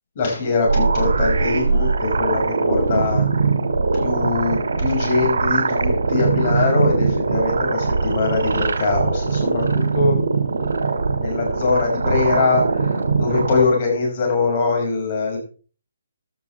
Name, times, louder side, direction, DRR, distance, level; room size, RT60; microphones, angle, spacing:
voice 1, 0.2-3.3 3.9-10.2 11.2-15.4, left 4 dB, 30° left, 0 dB, 6.9 m, -22 dB
sound 1, 0.7-13.7, right 4 dB, 75° right, 3.0 m, -21 dB
16.5 x 12.0 x 3.7 m, 0.38 s
hypercardioid pair, 170°, 0 cm